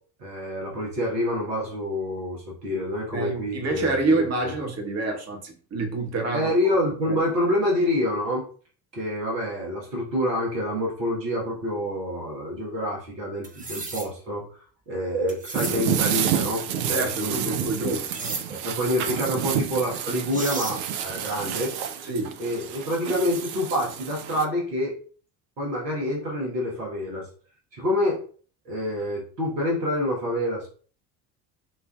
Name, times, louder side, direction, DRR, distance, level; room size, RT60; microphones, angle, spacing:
voice 1, 0.2-4.5 6.3-8.4 8.9-14.4 14.9-17.9 18.5-21.8 22.4-25.0 25.6-27.3 27.7-28.2 28.6-30.7, left 1 dB, 75° right, 1.4 m, -27 dB
voice 2, 3.1-6.5 7.0-7.2 16.9-18.4 22.0-22.4, right 2 dB, 30° right, 1.2 m, -27 dB
sound 1, 13.4-14.1 15.3-15.8 18.1-18.4 19.9-20.0 20.3-20.8, right 3 dB, 15° right, 0.8 m, -33 dB
sound 2, 15.6-24.5, right 8 dB, 50° right, 0.7 m, -29 dB
6.8 x 2.5 x 2.3 m
figure-of-eight pair, 60°, 49 cm